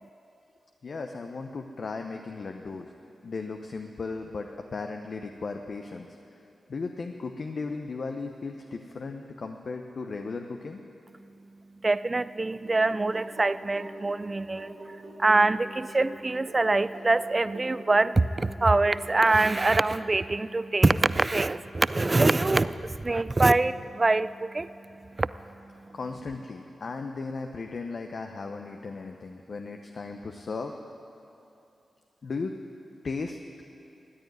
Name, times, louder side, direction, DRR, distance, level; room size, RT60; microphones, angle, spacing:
voice 1, 0.8-2.9 3.2-6.1 6.7-10.8 25.9-30.7 32.2-32.5 33.0-33.4, left 4 dB, 60° left, 4 dB, 0.8 m, -36 dB
voice 2, 11.8-24.7 25.2-25.3, right 2 dB, 35° right, 16 dB, 0.4 m, -24 dB
sound 1, 12.5-20.0, right 2 dB, 90° right, 2.6 m, -45 dB
14.0 x 9.3 x 9.6 m, 2.8 s
cardioid pair, 55°, 0 cm